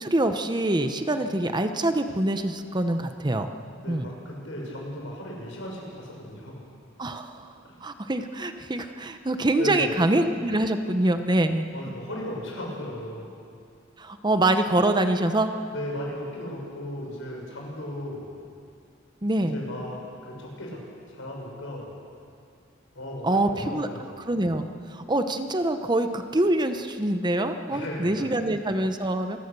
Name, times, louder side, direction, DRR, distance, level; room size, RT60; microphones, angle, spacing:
voice 1, 0.0-3.5 3.9-4.1 7.0-7.5 7.8-11.7 14.0-15.5 19.2-19.6 23.2-23.9 24.3-24.7 24.9-29.4, right 1 dB, 20° right, 8 dB, 0.8 m, -25 dB
voice 2, 3.8-6.6 9.6-9.9 11.7-13.3 15.7-18.4 19.4-20.0 20.2-20.8 21.1-22.0 22.9-24.2 27.7-28.3, left 1 dB, 80° left, -2 dB, 6.2 m, -36 dB
28.0 x 15.0 x 6.9 m, 2.4 s
head